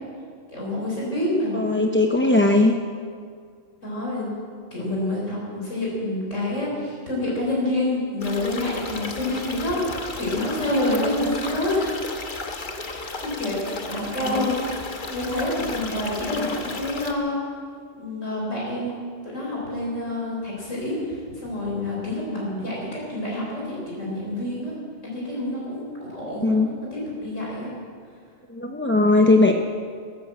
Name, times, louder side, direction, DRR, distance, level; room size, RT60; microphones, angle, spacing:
voice 1, 0.5-1.7 3.8-4.3 4.7-11.9 12.9-13.6 13.9-14.7 15.1-17.4 18.0-18.9 19.2-24.7 25.0-27.7, left 1 dB, 75° left, -4 dB, 4.5 m, -27 dB
voice 2, 1.5-2.7 14.3-14.5 26.4-26.7 28.5-29.5, left 2 dB, 15° left, 3 dB, 0.5 m, -19 dB
sound 1, 8.2-17.1, left 3 dB, 45° left, 1.3 m, -34 dB
14.5 x 13.5 x 7.5 m, 2.1 s
omnidirectional pair, 1.3 m